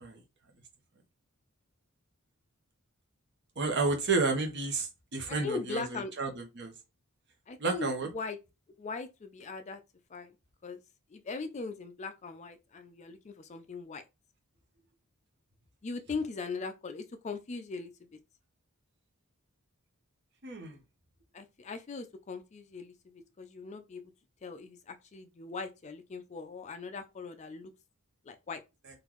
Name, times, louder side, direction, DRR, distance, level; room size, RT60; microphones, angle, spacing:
voice 1, 3.6-6.3 6.6-6.7 7.6-8.1 20.4-20.8, right 3 dB, 50° right, 0.9 m, -31 dB
voice 2, 5.3-6.4 7.5-8.4 8.8-9.8 10.1-10.3 10.6-10.8 11.1-14.0 15.8-18.2 21.3-24.1 24.4-27.7 28.2-28.6, left 4 dB, 30° left, 0.4 m, -40 dB
3.8 x 2.5 x 3.0 m
head